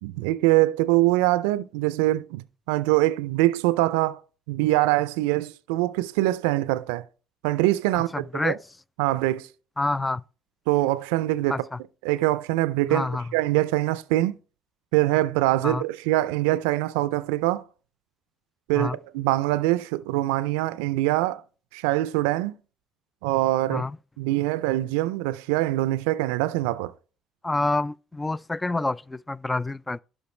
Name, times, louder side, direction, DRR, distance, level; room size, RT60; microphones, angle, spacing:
voice 1, 0.0-4.2 4.5-7.0 7.4-8.5 9.0-9.5 10.7-11.6 12.0-13.1 13.3-14.4 14.9-17.6 18.7-21.4 21.7-22.6 23.2-23.8 24.2-26.9, right 17 dB, 85° right, 0.4 m, -23 dB
voice 2, 7.9-8.6 9.8-10.2 11.5-11.8 12.9-13.3 15.6-15.8 18.7-19.0 23.7-24.0 27.4-30.0, left 2 dB, 20° left, 0.3 m, -28 dB
11.5 x 5.0 x 3.2 m
hypercardioid pair, 60°, 0 cm